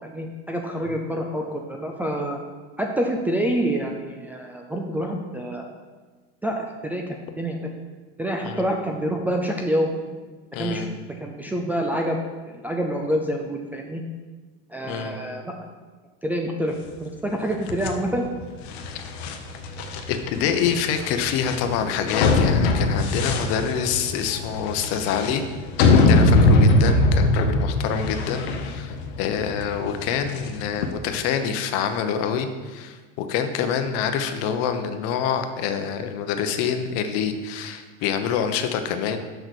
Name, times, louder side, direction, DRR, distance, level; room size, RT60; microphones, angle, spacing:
voice 1, 0.0-2.4 2.8-5.6 6.4-7.7 8.2-9.9 10.6-10.9 11.2-12.2 12.6-14.0 14.7-15.4 16.2-18.2, right 1 dB, 5° right, -1 dB, 0.4 m, -27 dB
voice 2, 10.5-10.9 14.9-15.2 18.9-19.0 20.1-25.4 26.0-39.2, left 7 dB, 50° left, 8 dB, 0.9 m, -26 dB
sound 1, 17.7-30.9, left 2 dB, 85° left, 1.0 m, -22 dB
6.7 x 5.9 x 6.3 m, 1.4 s
supercardioid pair, 155°, 31 cm